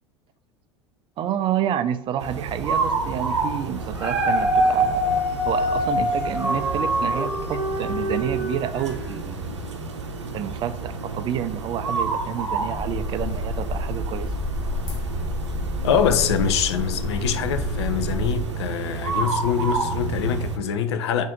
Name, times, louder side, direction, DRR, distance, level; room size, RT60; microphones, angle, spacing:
voice 1, 1.2-9.4 10.3-14.4, right 10 dB, 35° right, 0.3 m, -29 dB
sound 1, 2.2-20.6, right 4 dB, 80° right, 0.6 m, -30 dB
Dog, 3.8-9.1 9.6-9.7, right 1 dB, 10° right, 1.2 m, -24 dB
sound 2, 12.7-18.4, left 2 dB, 40° left, 1.0 m, -30 dB
voice 2, 15.8-21.2, left 7 dB, 70° left, 0.5 m, -24 dB
4.1 x 2.6 x 3.8 m
figure-of-eight pair, 75°, 15 cm